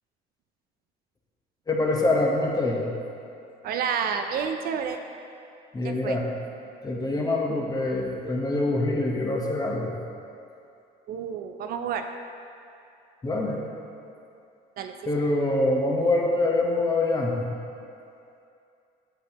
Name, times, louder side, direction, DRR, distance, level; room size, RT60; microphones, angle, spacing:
voice 1, 1.7-2.8 5.7-6.3 6.8-9.9 13.2-13.6 15.1-17.5, left 2 dB, 25° left, -1 dB, 1.0 m, -25 dB
voice 2, 3.6-5.0 5.8-6.2 11.1-12.0 14.8-14.9, right 7 dB, 60° right, 6 dB, 0.4 m, -29 dB
8.0 x 6.3 x 2.9 m, 2.6 s
cardioid pair, 110°, 17 cm